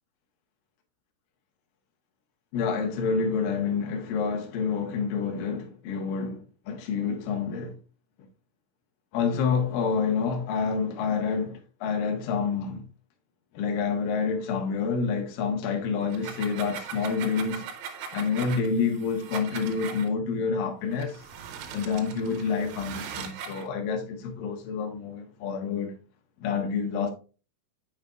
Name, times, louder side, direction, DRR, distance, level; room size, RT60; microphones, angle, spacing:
voice 1, 2.5-7.8 9.1-12.8 13.5-17.7 18.1-21.2 21.7-26.0 26.4-27.1, left 5 dB, 80° left, 1.9 m, -28 dB
sound 1, 16.0-20.1 20.9-23.7, right 7 dB, 75° right, 3.3 m, -40 dB
7.2 x 6.5 x 2.4 m
omnidirectional pair, 6.0 m